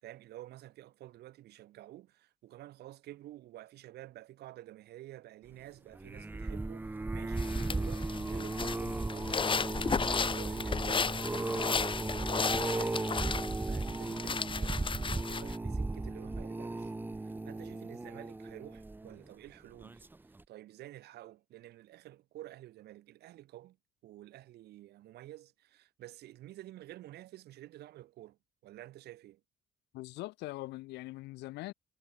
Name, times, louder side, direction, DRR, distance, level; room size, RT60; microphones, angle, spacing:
voice 1, 0.0-13.0 13.4-20.0 20.5-23.8 24.0-28.4 28.6-29.4, right 15 dB, 75° right, 7.2 m, -51 dB
sound 1, 5.9-19.3 19.8-20.1 20.4-20.5, right 2 dB, 10° right, 0.9 m, -36 dB
sound 2, 7.4-15.6, left 5 dB, 30° left, 4.2 m, -34 dB
voice 2, 29.9-31.7, left 19 dB, 85° left, 2.4 m, -42 dB
cardioid pair, 110°, 17 cm